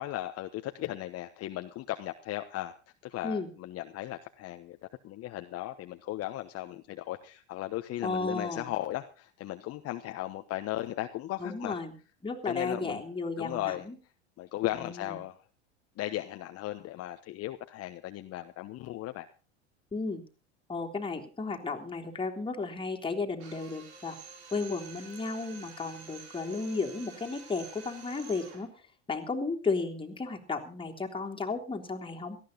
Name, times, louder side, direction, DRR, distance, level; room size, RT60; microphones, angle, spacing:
voice 1, 0.0-2.7 3.0-4.8 5.0-11.8 12.5-13.0 13.4-13.9 14.4-15.4 16.0-19.3, left 15 dB, 45° left, 7 dB, 1.2 m, -36 dB
voice 2, 8.0-8.7 11.4-12.0 12.2-13.9 14.8-15.2 19.9-20.2 20.7-24.2 24.5-28.7 29.1-32.4, left 3 dB, 15° left, 1 dB, 3.3 m, -34 dB
Drill, 23.4-28.7, right 5 dB, 70° right, 5.2 m, -49 dB
18.0 x 14.0 x 4.0 m, 0.36 s
hypercardioid pair, 90°, 34 cm